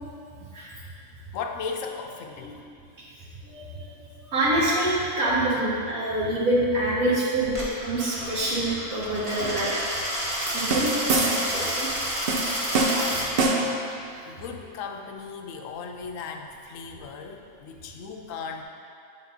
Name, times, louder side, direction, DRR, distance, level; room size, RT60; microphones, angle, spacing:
voice 1, 1.3-2.7 7.0-7.2 12.8-13.8 14.2-18.6, left 5 dB, 75° left, 4 dB, 1.0 m, -37 dB
voice 2, 3.0-9.8 10.5-11.9 13.9-14.2 16.9-17.0, right 1 dB, 80° right, -8 dB, 1.6 m, -26 dB
Coin (dropping), 7.4-13.3, equal, 25° right, 1.1 m, -30 dB
sound 1, 10.5-11.6 12.3-13.8, right 2 dB, 55° right, 0.7 m, -25 dB
8.1 x 5.4 x 2.7 m, 2.4 s
omnidirectional pair, 1.4 m